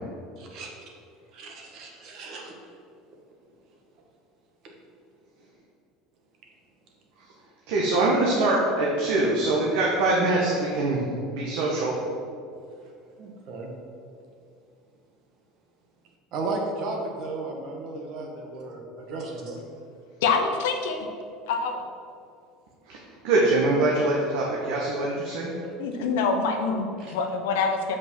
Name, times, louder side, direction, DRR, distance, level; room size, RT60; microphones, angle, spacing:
voice 1, 0.4-0.7 1.3-2.5 4.6-4.7 13.2-13.7 16.3-19.6 27.0-27.1, right 3 dB, 50° right, 1 dB, 1.3 m, -34 dB
voice 2, 7.7-11.9 22.9-23.0 23.2-25.5, right 2 dB, 75° right, -4 dB, 1.4 m, -23 dB
voice 3, 20.2-21.1 21.5-21.8 25.6-28.0, left 4 dB, 90° left, 4 dB, 1.0 m, -26 dB
6.1 x 5.3 x 6.3 m, 2.4 s
cardioid pair, 145°, 0 cm